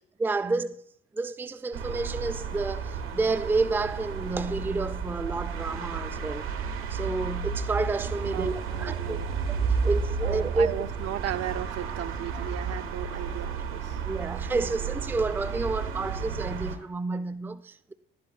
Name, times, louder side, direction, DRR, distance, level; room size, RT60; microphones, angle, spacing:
voice 1, 0.2-0.8 1.1-6.5 6.9-8.5 8.8-9.2 9.8-10.7 12.3-12.4 14.1-17.9, right 3 dB, 5° right, 0.4 m, -29 dB
sound 1, 1.7-16.8, right 5 dB, 80° right, 1.3 m, -32 dB
voice 2, 8.2-9.3 10.2-14.0, right 12 dB, 55° right, 0.6 m, -36 dB
11.5 x 9.9 x 2.4 m
hypercardioid pair, 55°, 30 cm